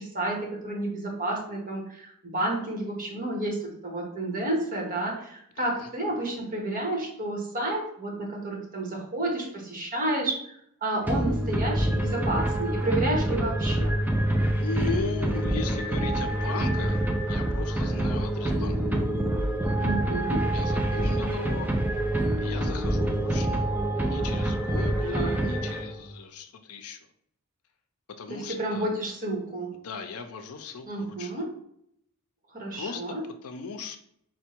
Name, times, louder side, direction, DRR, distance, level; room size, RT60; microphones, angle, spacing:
voice 1, 0.0-14.0 19.8-20.5 25.1-25.4 28.3-29.7 30.9-31.5 32.5-33.2, right 1 dB, 40° right, -1 dB, 1.2 m, -31 dB
voice 2, 5.6-5.9 14.6-17.0 17.3-18.8 20.5-21.7 22.4-23.7 24.0-27.0 28.2-28.9 29.8-31.5 32.7-33.0 33.4-34.0, left 4 dB, 70° left, 7 dB, 0.5 m, -37 dB
sound 1, 11.0-26.1, right 1 dB, 10° right, 0.4 m, -26 dB
4.4 x 2.2 x 4.3 m, 0.70 s
head